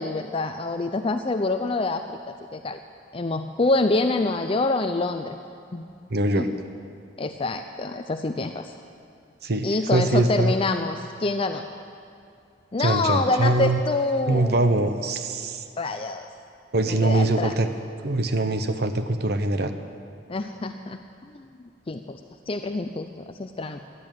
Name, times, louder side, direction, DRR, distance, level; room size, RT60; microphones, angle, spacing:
voice 1, 0.0-2.2 2.5-2.8 3.1-5.4 5.7-5.9 6.4-6.5 7.2-8.7 9.6-11.7 12.7-14.7 15.8-16.3 16.8-17.6 20.3-21.0 21.3-21.5 21.9-22.2 22.5-23.1 23.4-23.8, left 2 dB, 30° left, 7 dB, 0.5 m, -26 dB
voice 2, 6.1-6.5 9.4-10.5 12.8-13.8 14.3-15.6 16.7-17.7 18.0-19.7, right 2 dB, 60° right, 9 dB, 0.9 m, -23 dB
14.0 x 11.0 x 9.2 m, 2.5 s
head